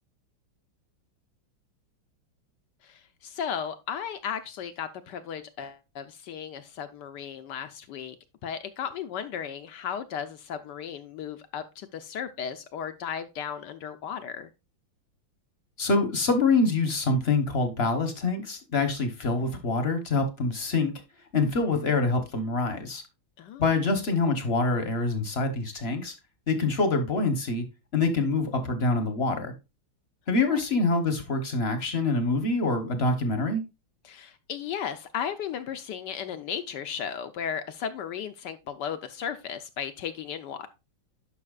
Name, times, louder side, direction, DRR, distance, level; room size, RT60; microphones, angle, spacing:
voice 1, 2.8-8.2 8.4-14.5 23.4-23.6 30.5-30.6 34.0-40.7, left 8 dB, 70° left, 1.1 m, -35 dB
voice 2, 15.8-20.9 21.3-23.0 23.6-26.1 26.5-27.6 27.9-29.5 30.3-33.6, left 3 dB, 40° left, 0.9 m, -25 dB
11.0 x 5.7 x 2.3 m
omnidirectional pair, 2.2 m